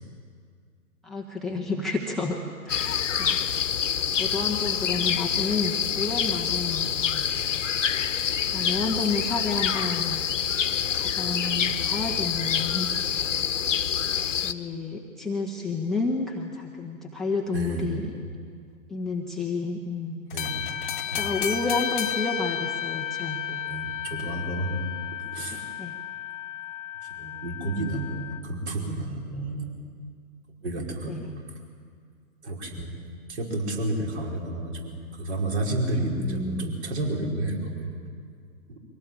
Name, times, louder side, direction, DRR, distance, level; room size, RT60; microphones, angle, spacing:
voice 1, 1.0-2.4 2.6-3.4 4.1-7.2 8.5-10.2 10.9-13.4 14.3-18.1 18.9-20.3 20.9-23.6 25.8-25.9 31.1-31.3 36.1-36.7, left 3 dB, ahead, 0 dB, 0.8 m, -31 dB
sound 1, 2.7-14.5, left 8 dB, 55° left, 1.1 m, -26 dB
voice 2, 17.5-18.0 20.3-20.7 21.1-21.4 23.7-24.8 25.1-25.6 27.1-29.8 30.6-31.2 32.4-32.9 33.3-37.9 38.7-38.8, right 1 dB, 50° right, 1 dB, 5.1 m, -31 dB
sound 2, 20.3-28.4, left 10 dB, 35° left, 0.9 m, -33 dB
23.0 x 17.5 x 9.1 m, 2.1 s
figure-of-eight pair, 125°, 43 cm